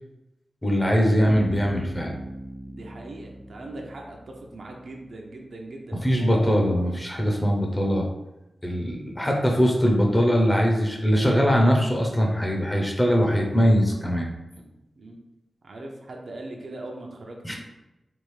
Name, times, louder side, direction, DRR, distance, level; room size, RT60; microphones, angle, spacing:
voice 1, 0.6-2.1 6.0-8.1 8.6-14.3 17.4-17.6, equal, 15° left, 0 dB, 0.6 m, -21 dB
Bass guitar, 1.2-5.0, right 1 dB, 80° right, 0.9 m, -39 dB
voice 2, 2.7-6.6 14.5-15.2 15.6-17.6, right 2 dB, 60° right, 1 dB, 0.5 m, -40 dB
3.4 x 2.4 x 3.2 m, 0.96 s
wide cardioid pair, 105°, 0 cm